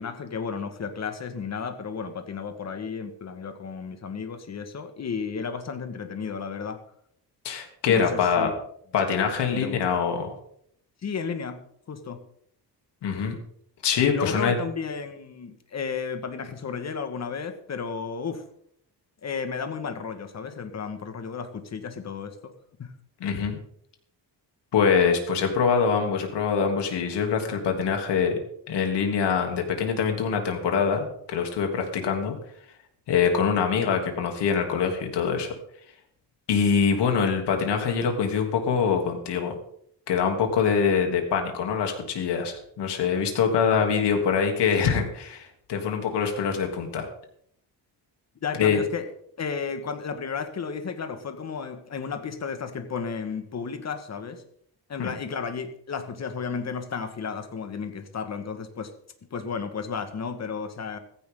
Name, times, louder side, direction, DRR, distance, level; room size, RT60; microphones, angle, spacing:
voice 1, 0.0-6.8 7.9-8.5 9.5-10.1 11.0-11.6 11.9-12.2 14.1-18.4 19.2-22.5 22.8-22.9 48.4-49.1 49.4-54.4 54.9-58.9 59.3-61.0, left 5 dB, 40° left, 8 dB, 1.8 m, -33 dB
voice 2, 7.4-8.5 8.9-10.4 13.0-13.4 13.8-14.6 23.2-23.6 24.7-28.4 28.7-32.3 33.1-35.5 36.5-39.6 40.1-47.1 48.6-48.8 55.0-55.1, left 6 dB, 75° left, 3 dB, 3.2 m, -24 dB
16.0 x 15.0 x 3.9 m, 0.69 s
cardioid pair, 140°, 41 cm